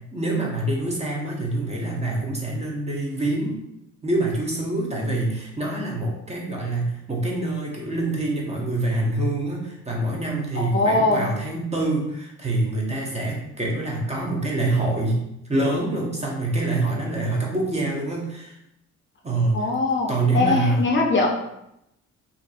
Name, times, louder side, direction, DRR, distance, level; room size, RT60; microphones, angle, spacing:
voice 1, 0.0-3.6 4.0-15.2 15.5-18.6 19.2-19.7 20.1-20.9, right 2 dB, 20° right, -2 dB, 0.7 m, -25 dB
voice 2, 10.5-11.3 19.5-20.1 20.3-21.3, left 3 dB, 40° left, 0 dB, 0.5 m, -21 dB
2.5 x 2.5 x 2.3 m, 0.82 s
cardioid pair, 90°, 30 cm